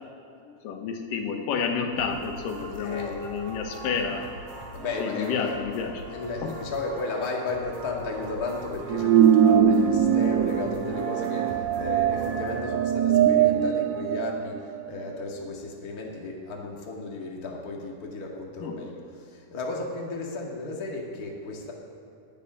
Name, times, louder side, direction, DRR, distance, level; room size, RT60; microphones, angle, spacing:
voice 1, 0.4-4.2 5.0-6.0 6.4-6.5 18.6-18.8, left 6 dB, 85° left, 4 dB, 2.7 m, -30 dB
sound 1, 1.9-12.6, equal, 50° right, 5.0 m, -41 dB
voice 2, 2.8-3.1 4.7-5.6 6.1-21.7, left 3 dB, 35° left, -1 dB, 1.8 m, -34 dB
sound 2, 8.9-15.0, right 9 dB, 90° right, 1.6 m, -22 dB
13.0 x 8.6 x 9.9 m, 2.7 s
omnidirectional pair, 3.8 m